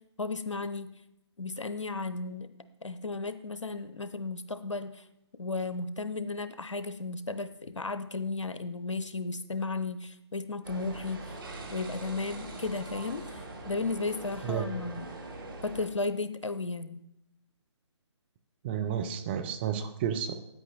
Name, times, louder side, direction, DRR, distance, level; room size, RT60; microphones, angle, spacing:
voice 1, 0.2-0.9 1.4-2.5 2.8-5.0 5.4-11.2 11.7-15.1 15.6-17.0, left 3 dB, 80° left, 12 dB, 0.8 m, -34 dB
sound 1, 10.6-15.9, right 2 dB, 45° right, 1.6 m, -42 dB
voice 2, 18.6-20.3, right 8 dB, 20° right, 7 dB, 0.7 m, -31 dB
9.1 x 8.3 x 4.1 m, 0.83 s
figure-of-eight pair, 140°, 15 cm